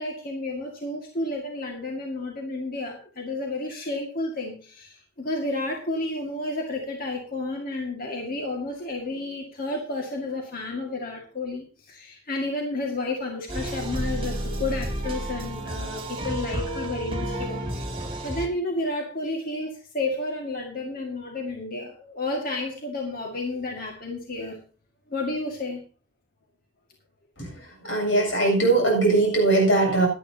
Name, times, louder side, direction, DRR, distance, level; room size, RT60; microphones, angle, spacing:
voice 1, 0.0-24.6 25.1-25.8, left 2 dB, 50° left, 1 dB, 2.1 m, -31 dB
sound 1, 13.5-18.5, right 1 dB, 30° right, 2.4 m, -31 dB
voice 2, 27.4-30.1, right 2 dB, 90° left, 1 dB, 7.6 m, -21 dB
17.0 x 11.5 x 2.9 m, 0.37 s
head